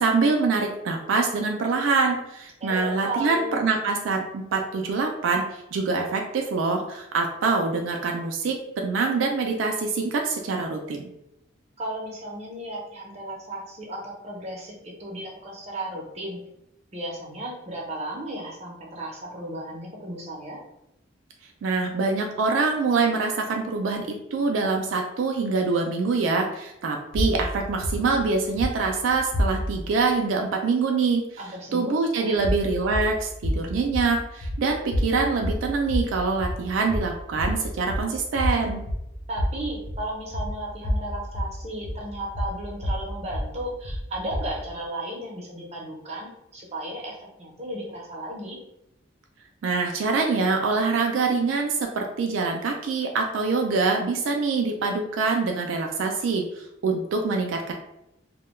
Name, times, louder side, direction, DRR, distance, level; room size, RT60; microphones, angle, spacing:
voice 1, 0.0-11.0 21.6-31.2 31.7-38.8 49.6-57.7, right 4 dB, 80° right, 2 dB, 0.3 m, -25 dB
voice 2, 2.6-3.6 11.8-16.4 16.9-20.6 31.4-32.4 39.3-48.6, right 1 dB, 35° right, -2 dB, 0.6 m, -34 dB
sound 1, 27.1-29.9 32.3-44.7, equal, 80° left, 0.5 m, -30 dB
2.2 x 2.1 x 3.0 m, 0.84 s
head